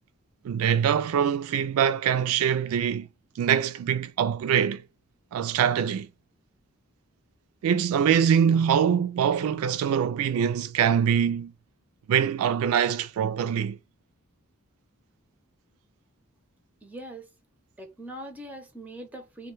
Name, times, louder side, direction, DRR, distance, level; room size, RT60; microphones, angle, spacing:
voice 1, 0.4-3.1 3.4-4.8 5.3-6.1 7.6-11.5 12.1-13.8, right 8 dB, 80° right, 0.3 m, -24 dB
voice 2, 16.8-17.3 17.8-19.5, right 1 dB, 10° right, 0.6 m, -41 dB
2.2 x 2.2 x 3.0 m
head